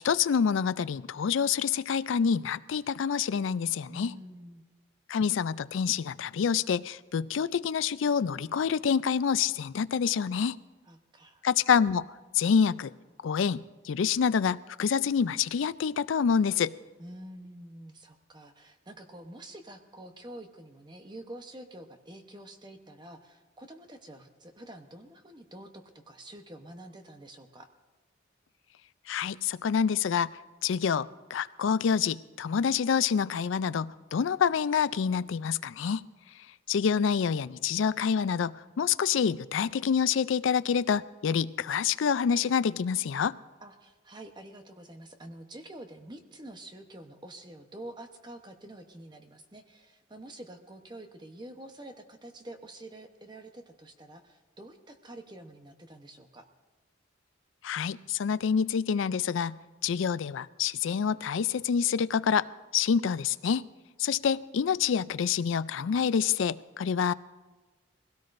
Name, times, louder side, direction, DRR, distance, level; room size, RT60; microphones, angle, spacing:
voice 1, 0.0-4.1 5.1-10.6 11.4-12.1 12.3-12.9 13.2-16.7 29.1-36.0 36.7-43.4 57.6-59.6 59.8-62.5 62.7-63.7 64.0-67.1, left 7 dB, 75° left, 17 dB, 0.4 m, -27 dB
voice 2, 3.9-4.6 10.8-11.5 17.0-27.7 43.6-56.4, right 1 dB, 20° right, 6 dB, 0.9 m, -47 dB
21.0 x 17.0 x 2.6 m, 1.3 s
head